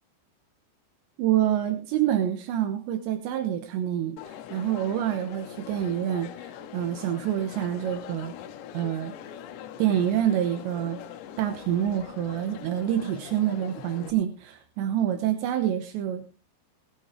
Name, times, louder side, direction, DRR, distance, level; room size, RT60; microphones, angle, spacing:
voice 1, 1.2-8.3 8.7-9.1 9.8-11.0 11.4-16.3, right 11 dB, 80° right, 6 dB, 3.3 m, -27 dB
Crowd, 4.2-14.1, left 9 dB, 90° left, 3.1 m, -42 dB
19.0 x 9.3 x 3.6 m, 0.33 s
omnidirectional pair, 5.1 m